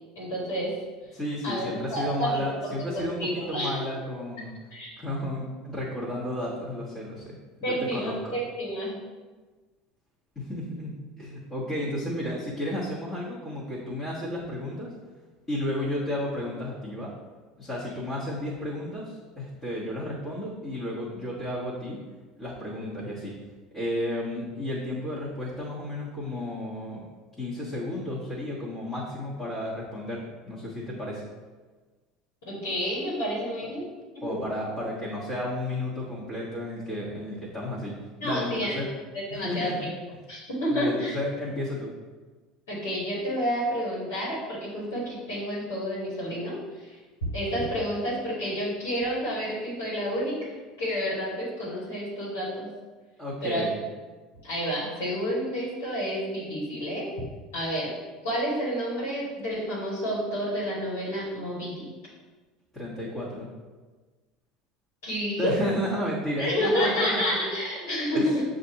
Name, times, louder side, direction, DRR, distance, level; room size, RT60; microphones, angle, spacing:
voice 1, 0.1-0.7 1.4-3.8 4.7-5.0 7.6-8.9 32.5-33.8 34.1-34.4 38.2-38.8 39.1-39.9 40.3-41.2 42.7-47.0 47.3-52.7 53.4-53.6 54.4-57.1 57.5-57.9 58.2-61.8 65.0-65.5 66.4-68.4, equal, 75° left, -8 dB, 1.5 m, -30 dB
voice 2, 1.1-3.2 3.5-4.5 5.0-7.4 7.7-8.4 10.3-14.9 15.5-17.1 17.6-22.0 22.4-23.4 23.7-27.0 27.4-31.2 34.2-37.9 38.2-38.9 39.3-39.9 40.7-41.9 53.2-53.8 62.7-63.5 65.4-67.4 68.1-68.4, left 1 dB, 25° left, -9 dB, 1.4 m, -32 dB
7.3 x 2.5 x 2.8 m, 1.3 s
hypercardioid pair, 70°, 0 cm